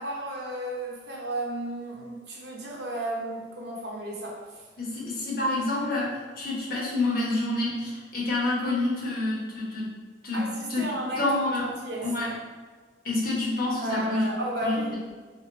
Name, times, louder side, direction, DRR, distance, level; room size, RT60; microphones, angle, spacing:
voice 1, 0.0-4.6 10.3-11.3 11.6-12.1 13.8-15.0, right 1 dB, 70° right, -2 dB, 1.0 m, -33 dB
voice 2, 4.8-9.9 10.2-10.8 11.2-11.6 12.0-12.3 13.0-14.3 14.6-14.8, left 2 dB, 55° left, -4 dB, 1.2 m, -28 dB
3.9 x 3.4 x 3.9 m, 1.4 s
head